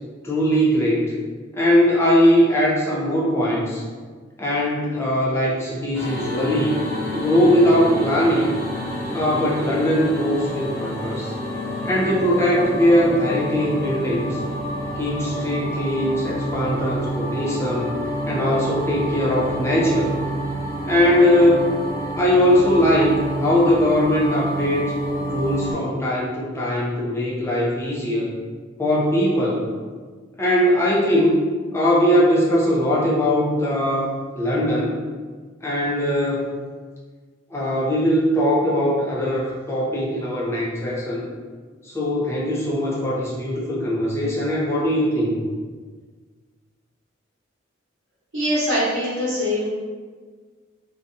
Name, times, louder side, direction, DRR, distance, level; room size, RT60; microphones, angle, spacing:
voice 1, 0.2-1.1 1.5-3.8 4.4-6.8 7.1-8.6 9.1-11.3 11.8-14.4 15.0-18.0 18.3-20.1 20.8-21.7 22.2-24.9 25.3-28.3 28.8-29.7 30.4-31.4 31.7-35.0 35.6-36.5 37.5-41.3 41.8-45.4, equal, 15° left, -5 dB, 0.4 m, -20 dB
sound 1, 5.9-25.7, right 1 dB, 10° right, 1.1 m, -28 dB
voice 2, 48.3-49.7, equal, 80° right, -12 dB, 1.0 m, -22 dB
2.7 x 2.2 x 2.5 m, 1.5 s
head